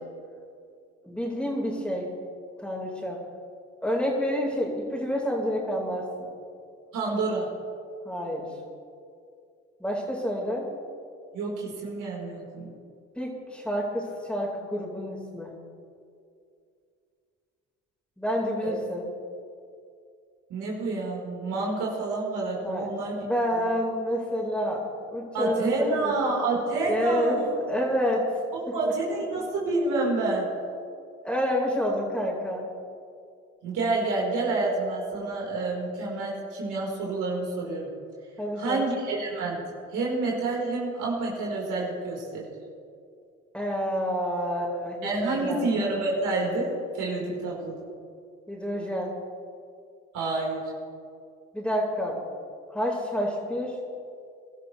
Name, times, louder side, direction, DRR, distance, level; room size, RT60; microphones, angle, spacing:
voice 1, 1.0-2.1 2.6-3.2 3.8-6.3 8.0-8.5 9.8-10.7 13.2-15.6 18.2-19.1 22.6-22.9 23.2-26.1 26.9-28.3 28.7-28.9 31.2-32.6 38.4-38.8 43.5-45.6 48.5-49.1 51.5-52.2 52.7-53.8, equal, 5° left, -2 dB, 4.6 m, -28 dB
voice 2, 6.9-7.5 11.3-12.7 18.6-18.7 20.5-23.2 23.5-23.7 25.3-27.5 28.7-30.5 33.6-37.9 38.6-39.6 39.9-42.5 45.0-47.8 50.1-50.6, right 3 dB, 75° right, -3 dB, 4.5 m, -28 dB
24.5 x 12.5 x 3.3 m, 2.4 s
hypercardioid pair, 55°, 31 cm